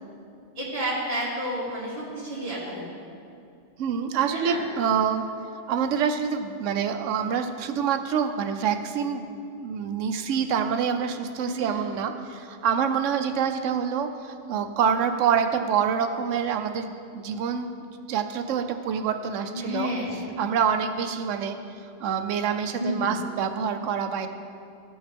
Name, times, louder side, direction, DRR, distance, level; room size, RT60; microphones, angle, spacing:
voice 1, 0.6-2.8 4.3-4.6 11.5-11.8 19.5-20.2 22.8-23.1, equal, 30° right, -10 dB, 2.1 m, -30 dB
voice 2, 3.8-5.3 5.7-17.7 18.1-21.6 21.8-24.3, right 7 dB, 80° right, 8 dB, 1.0 m, -26 dB
14.5 x 5.5 x 3.4 m, 2.5 s
omnidirectional pair, 1.3 m